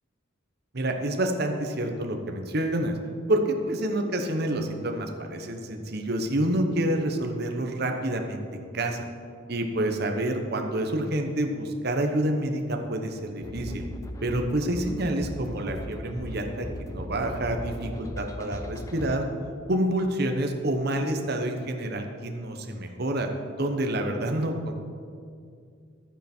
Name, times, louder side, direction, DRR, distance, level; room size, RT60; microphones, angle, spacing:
voice 1, 0.7-3.0 3.3-9.1 9.5-13.8 14.2-19.2 19.7-23.3 23.6-24.7, right 1 dB, 50° right, 4 dB, 1.1 m, -28 dB
sound 1, 13.4-19.2, left 1 dB, 15° left, 0.6 m, -37 dB
12.5 x 8.9 x 4.5 m, 2.3 s
head